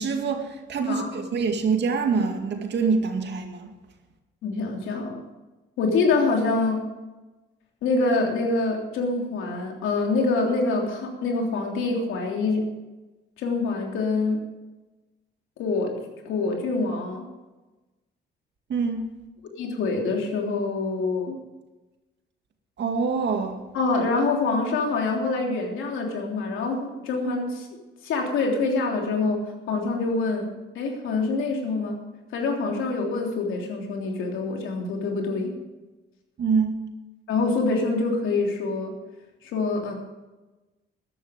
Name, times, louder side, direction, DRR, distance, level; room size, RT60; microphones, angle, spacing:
voice 1, 0.0-3.7 18.7-19.0 22.8-23.6 36.4-36.8, right 5 dB, 60° right, 4 dB, 2.3 m, -25 dB
voice 2, 4.4-5.2 5.8-6.8 7.8-12.7 13.4-14.4 15.6-15.9 16.2-17.2 19.6-21.4 23.7-27.7 28.0-29.4 29.7-30.5 30.7-31.9 32.3-35.6 37.3-38.9 39.4-39.9, left 3 dB, 85° left, 1 dB, 3.2 m, -25 dB
14.0 x 11.0 x 5.2 m, 1.1 s
cardioid pair, 90°, 20 cm